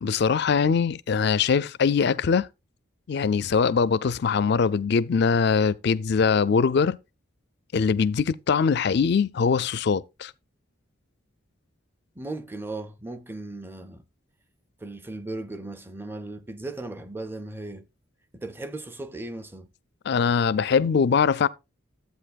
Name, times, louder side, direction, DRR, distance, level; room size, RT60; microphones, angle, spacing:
voice 1, 0.0-2.5 3.1-7.0 7.7-10.3 20.1-21.5, left 5 dB, 50° left, 0.4 m, -22 dB
voice 2, 12.2-14.0 14.8-17.9 18.3-19.7, right 2 dB, 10° right, 0.5 m, -37 dB
12.0 x 8.2 x 2.4 m
head